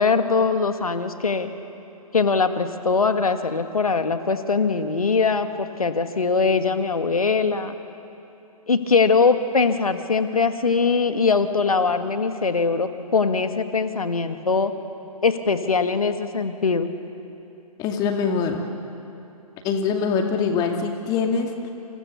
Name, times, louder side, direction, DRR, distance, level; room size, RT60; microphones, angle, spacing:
voice 1, 0.0-1.5 2.1-7.8 8.7-14.7 15.2-16.9, left 4 dB, 65° left, 8 dB, 1.9 m, -21 dB
voice 2, 17.8-18.6 19.6-21.7, left 5 dB, 20° left, 4 dB, 2.2 m, -23 dB
29.5 x 27.5 x 7.1 m, 2.9 s
figure-of-eight pair, 130°, 20 cm